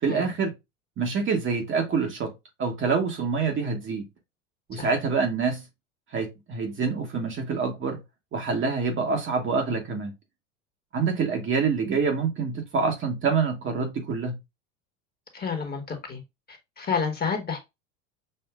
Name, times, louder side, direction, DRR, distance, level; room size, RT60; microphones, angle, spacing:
voice 1, 0.0-0.5 1.0-2.3 2.6-4.1 4.7-5.6 6.1-8.0 8.3-10.1 10.9-14.3, right 5 dB, 30° right, 1.1 m, -26 dB
voice 2, 15.3-16.2 16.5-17.6, left 6 dB, 25° left, 1.3 m, -30 dB
6.5 x 2.5 x 2.2 m
hypercardioid pair, 90°, 41 cm